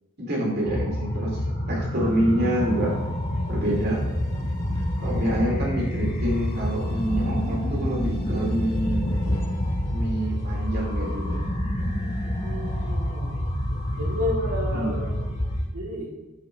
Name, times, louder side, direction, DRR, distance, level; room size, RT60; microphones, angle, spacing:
voice 1, 0.2-1.4 1.7-2.9 3.5-4.0 5.0-9.1 9.9-11.4 14.7-14.9, right 1 dB, 50° right, -3 dB, 2.7 m, -27 dB
sound 1, 0.6-15.6, left 1 dB, 30° left, 1.0 m, -28 dB
sound 2, 1.9-5.4 5.8-11.4 11.8-15.7, left 2 dB, 70° left, 3.0 m, -46 dB
sound 3, 2.7-14.3, equal, 90° left, 1.4 m, -37 dB
voice 2, 12.4-13.4 14.0-15.1 15.7-16.1, left 1 dB, 75° right, -1 dB, 2.0 m, -31 dB
11.5 x 5.2 x 3.3 m, 1.1 s
head